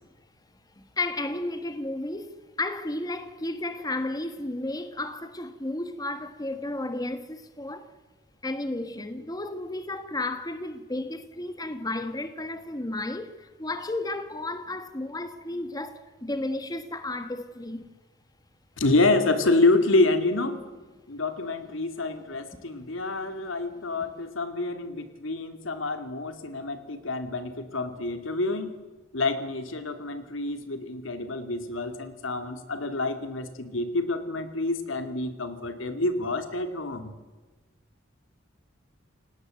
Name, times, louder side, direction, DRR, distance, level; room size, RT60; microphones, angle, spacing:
voice 1, 0.8-7.9 8.4-17.9 22.5-22.6, left 2 dB, 20° left, 1.5 m, -33 dB
voice 2, 18.8-20.6 21.1-28.8 29.1-37.1, left 2 dB, 85° left, 2.7 m, -27 dB
29.5 x 17.5 x 7.9 m
head